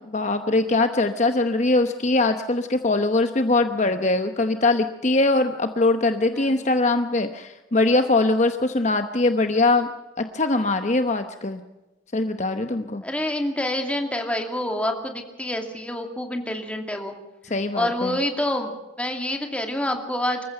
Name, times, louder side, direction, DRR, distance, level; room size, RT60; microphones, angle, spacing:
voice 1, 0.1-11.6 12.1-13.0 17.4-18.2, left 2 dB, 40° left, 7 dB, 0.9 m, -22 dB
voice 2, 13.0-17.2 17.7-20.5, left 1 dB, 5° left, 3 dB, 2.4 m, -27 dB
26.0 x 15.0 x 6.7 m, 1.1 s
head